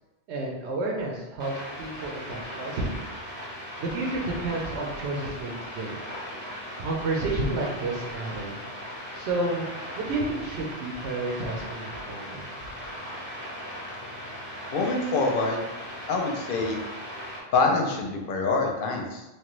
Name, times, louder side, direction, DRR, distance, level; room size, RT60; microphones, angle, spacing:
voice 1, 0.3-3.0 3.8-6.0 6.8-8.6 9.1-9.6 10.0-12.4, right 2 dB, 85° right, -1 dB, 0.9 m, -30 dB
sound 1, 1.4-17.4, equal, 10° left, 0.6 m, -38 dB
voice 2, 14.7-15.6 16.1-16.8 17.5-19.2, left 3 dB, 60° left, 2 dB, 0.7 m, -25 dB
3.0 x 2.2 x 3.0 m, 1.0 s
omnidirectional pair, 1.1 m